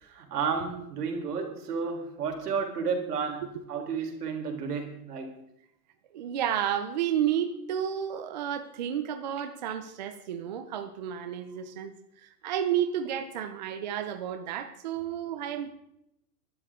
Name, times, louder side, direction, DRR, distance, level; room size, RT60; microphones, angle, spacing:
voice 1, 0.0-5.4, right 5 dB, 75° right, 4 dB, 4.3 m, -32 dB
voice 2, 6.1-11.9 12.2-15.7, right 9 dB, 30° right, 8 dB, 0.7 m, -31 dB
20.0 x 12.5 x 3.8 m, 0.78 s
supercardioid pair, 175°, 47 cm